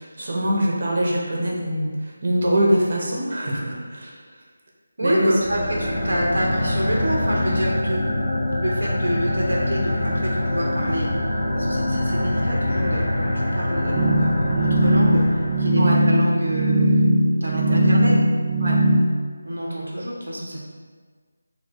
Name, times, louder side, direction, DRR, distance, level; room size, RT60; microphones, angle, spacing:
voice 1, 0.0-4.2 5.0-5.3 15.8-16.0 17.7-18.1 18.6-18.8, equal, 50° right, -3 dB, 0.9 m, -23 dB
voice 2, 5.0-8.3 8.6-11.1 11.5-15.3 15.6-18.2 19.4-20.6, equal, 85° right, -3 dB, 0.6 m, -27 dB
sound 1, 5.4-15.8, left 1 dB, 35° left, 1.3 m, -24 dB
sound 2, 13.9-19.0, right 1 dB, 25° right, 0.3 m, -19 dB
2.9 x 2.5 x 4.3 m, 1.6 s
figure-of-eight pair, 160°, 0 cm